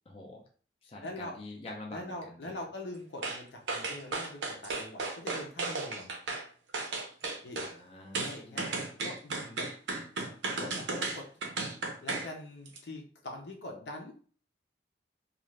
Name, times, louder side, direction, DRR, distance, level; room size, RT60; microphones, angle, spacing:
voice 1, 0.1-0.5 0.8-2.7 7.6-8.9, left 2 dB, 35° left, 0 dB, 0.5 m, -47 dB
voice 2, 1.0-1.3 1.9-6.1 7.4-7.6 8.1-9.6 10.6-11.2 12.0-14.1, left 1 dB, 75° left, 2 dB, 0.7 m, -43 dB
sound 1, 3.2-3.4 3.7-6.4 6.7-7.7 8.1-12.3 12.6-12.8, right 3 dB, 90° right, 0.7 m, -34 dB
2.5 x 2.4 x 3.1 m, 0.43 s
head